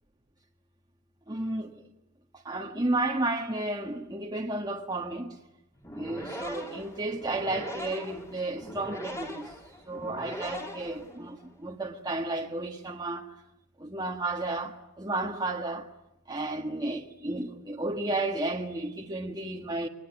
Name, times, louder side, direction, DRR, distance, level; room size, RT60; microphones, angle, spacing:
voice 1, 1.3-1.7 2.4-5.3 5.9-9.5 9.9-13.3 13.8-15.9 16.3-19.9, right 2 dB, 20° right, 1.7 m, -32 dB
sound 1, 5.8-11.5, equal, 15° left, 3.5 m, -41 dB
24.0 x 21.0 x 9.5 m
head